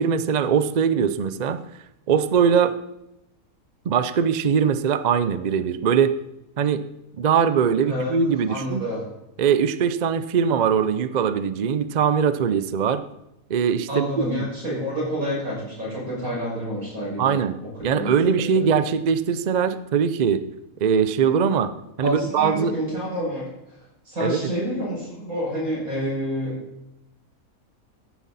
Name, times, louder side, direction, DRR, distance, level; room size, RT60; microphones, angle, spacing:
voice 1, 0.0-1.6 2.1-2.8 3.9-6.1 6.6-6.8 7.2-8.8 9.4-13.0 13.5-14.1 17.2-17.6 17.8-20.4 20.8-21.7 22.0-22.7 24.2-24.4, right 7 dB, 55° right, 13 dB, 0.5 m, -21 dB
voice 2, 7.8-8.2 8.5-9.0 13.9-17.4 17.9-18.1 18.5-18.6 22.0-23.5 24.1-26.6, equal, 75° right, -5 dB, 6.8 m, -28 dB
15.5 x 10.0 x 4.1 m, 0.88 s
omnidirectional pair, 1.5 m